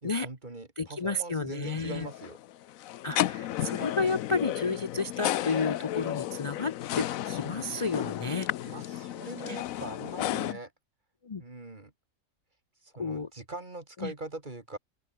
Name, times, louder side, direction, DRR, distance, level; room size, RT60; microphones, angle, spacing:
voice 1, 0.0-2.4 8.6-10.7 11.4-11.9 12.8-14.8, right 2 dB, 35° right, 2.4 m, -42 dB
voice 2, 0.8-2.1 3.0-8.5 9.5-9.6 10.2-10.6 11.3-11.4 13.0-13.3 14.0-14.1, left 3 dB, 40° left, 0.4 m, -31 dB
sound 1, 1.6-10.5, left 13 dB, 90° left, 1.1 m, -33 dB
omnidirectional pair, 1.4 m